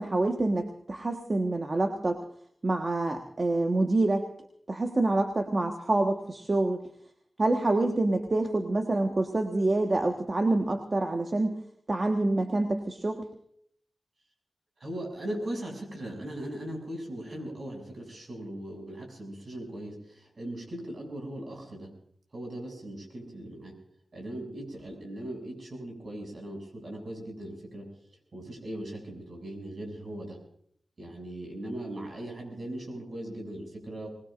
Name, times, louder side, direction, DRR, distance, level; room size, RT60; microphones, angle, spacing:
voice 1, 0.0-2.2 2.6-4.2 4.7-6.8 7.4-11.6 11.9-13.3, right 2 dB, 40° right, 4 dB, 1.5 m, -27 dB
voice 2, 14.8-21.9 22.3-23.7 24.1-27.9 28.3-30.4 31.0-34.1, right 1 dB, 55° right, 1 dB, 7.2 m, -39 dB
24.5 x 20.5 x 2.6 m, 0.66 s
wide cardioid pair, 80°, 0 cm